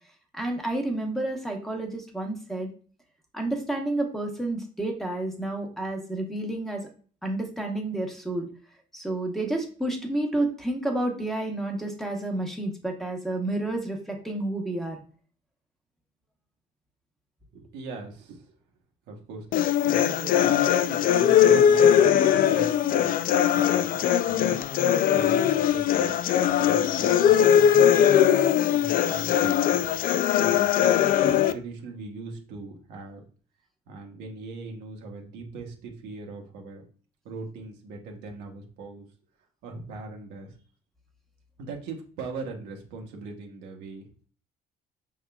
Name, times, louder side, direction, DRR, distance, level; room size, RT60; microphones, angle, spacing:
voice 1, 0.3-2.7 3.3-6.8 7.2-8.5 8.9-15.0, right 2 dB, ahead, 2 dB, 1.0 m, -30 dB
voice 2, 17.5-18.4 19.1-26.2 26.4-27.9 28.7-30.0 30.4-33.2 33.9-36.8 37.2-39.0 39.6-40.6 41.6-44.1, right 3 dB, 85° right, 1 dB, 1.1 m, -40 dB
sound 1, 19.5-31.5, left 9 dB, 55° left, 0.4 m, -20 dB
5.4 x 3.6 x 2.3 m, 0.42 s
cardioid pair, 110°, 17 cm